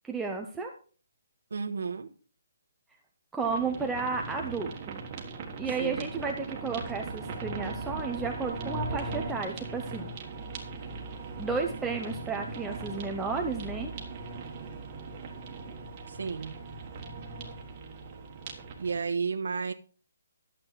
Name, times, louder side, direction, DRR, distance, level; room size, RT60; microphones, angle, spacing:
voice 1, 0.0-0.7 3.3-5.0 5.6-10.1 11.4-13.9, right 4 dB, 5° right, 1 dB, 0.5 m, -33 dB
voice 2, 1.5-2.1 5.8-6.1 16.1-16.6 18.8-19.7, right 5 dB, 60° right, 5 dB, 1.1 m, -32 dB
sound 1, 3.4-19.0, right 3 dB, 20° right, 1.4 m, -39 dB
12.0 x 7.4 x 4.6 m, 0.40 s
hypercardioid pair, 180°, 0 cm